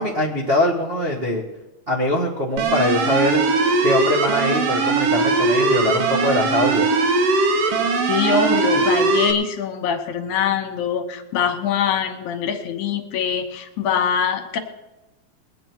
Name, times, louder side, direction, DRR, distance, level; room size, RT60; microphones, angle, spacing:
voice 1, 0.0-1.4 1.9-3.4 3.8-6.9, left 1 dB, 50° right, -4 dB, 0.7 m, -22 dB
sound 1, 2.6-9.3, right 3 dB, 65° right, 1.8 m, -20 dB
voice 2, 8.1-14.6, left 7 dB, 75° left, 6 dB, 2.4 m, -23 dB
21.5 x 8.7 x 4.6 m, 1.0 s
omnidirectional pair, 3.6 m